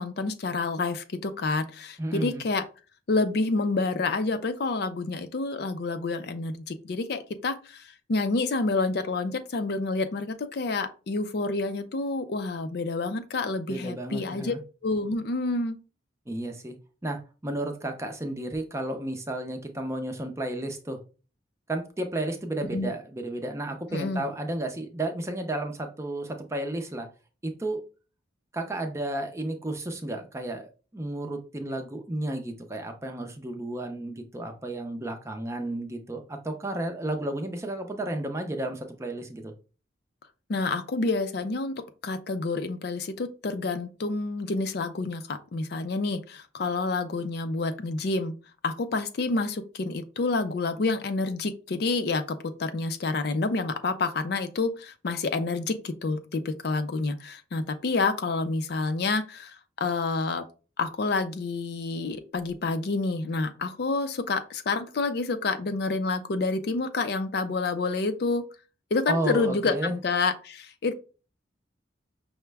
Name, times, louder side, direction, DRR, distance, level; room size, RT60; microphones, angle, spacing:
voice 1, 0.0-2.6 3.1-14.5 14.8-15.8 22.6-22.9 23.9-24.2 40.5-48.3 48.6-60.4 60.8-68.4 68.9-70.9, left 3 dB, 55° left, 9 dB, 0.4 m, -28 dB
voice 2, 2.0-2.4 13.7-14.6 16.3-16.8 17.0-21.0 21.7-27.1 27.4-27.8 28.5-39.5 69.1-69.9, right 1 dB, 15° right, 4 dB, 0.5 m, -32 dB
5.7 x 2.1 x 3.3 m, 0.35 s
head